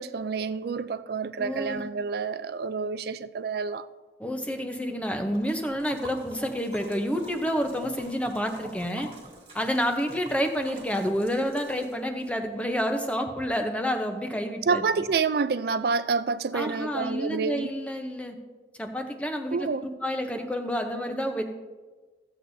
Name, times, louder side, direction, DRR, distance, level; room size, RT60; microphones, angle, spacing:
voice 1, 0.0-3.9 14.7-17.7 19.5-19.9, right 5 dB, 60° right, 0.4 m, -28 dB
voice 2, 1.4-1.9 4.2-9.1 9.5-14.8 16.5-18.4 18.8-19.7 20.0-21.4, equal, 5° left, 0.8 m, -29 dB
Liquid, 5.1-12.3, right 1 dB, 30° right, 1.9 m, -48 dB
15.0 x 7.8 x 2.7 m
head